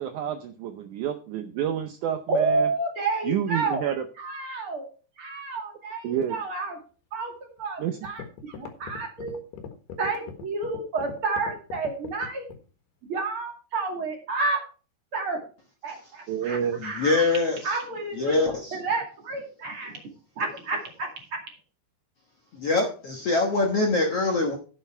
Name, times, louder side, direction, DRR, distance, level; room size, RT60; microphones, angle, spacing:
voice 1, 0.0-2.7 3.2-4.0 6.0-6.4 7.8-8.0 16.3-16.8, right 9 dB, 90° right, 8 dB, 1.7 m, -29 dB
voice 2, 2.3-3.9 4.2-4.9 5.2-6.8 7.1-9.4 10.0-12.4 13.1-14.6 15.1-15.4 15.8-17.2 17.6-18.4 18.7-20.0 20.4-21.4, right 3 dB, 40° right, 2 dB, 2.6 m, -30 dB
sound 1, 7.6-7.7 8.0-12.7, left 7 dB, 85° left, 3.6 m, -40 dB
voice 3, 16.8-17.8 18.1-18.8 22.5-24.6, left 3 dB, 60° left, 1 dB, 1.7 m, -24 dB
11.5 x 8.0 x 4.4 m, 0.37 s
omnidirectional pair, 4.5 m